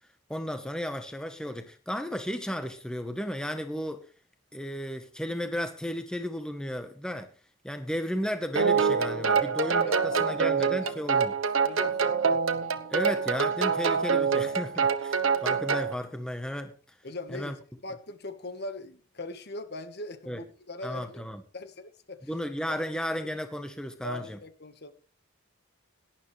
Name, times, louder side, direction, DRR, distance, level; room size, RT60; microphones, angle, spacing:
voice 1, 0.3-4.1 4.5-7.3 7.6-11.3 12.9-16.7 17.3-17.5 20.3-20.4 20.8-21.4 22.3-24.4, equal, 5° left, 1.1 m, -34 dB
sound 1, 8.6-15.9, right 5 dB, 75° right, 1.1 m, -26 dB
voice 2, 9.8-11.3 11.6-12.6 17.0-17.6 17.8-21.2 21.5-22.3 22.7-22.8 24.0-24.9, left 2 dB, 50° left, 1.5 m, -41 dB
18.0 x 11.5 x 3.3 m
head